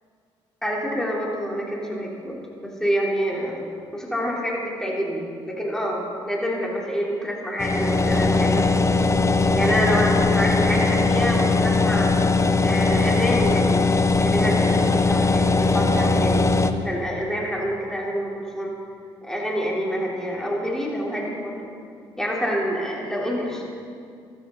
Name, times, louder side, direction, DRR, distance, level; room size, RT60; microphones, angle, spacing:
voice 1, 0.6-3.6 3.9-8.6 9.5-12.1 12.6-13.9 14.2-16.4 16.8-18.7 19.2-21.7 22.2-23.8, equal, 5° left, -4 dB, 3.9 m, -27 dB
sound 1, 7.6-16.7, left 3 dB, 25° left, 0.8 m, -20 dB
14.0 x 13.5 x 4.1 m, 2.3 s
supercardioid pair, 60°, 11 cm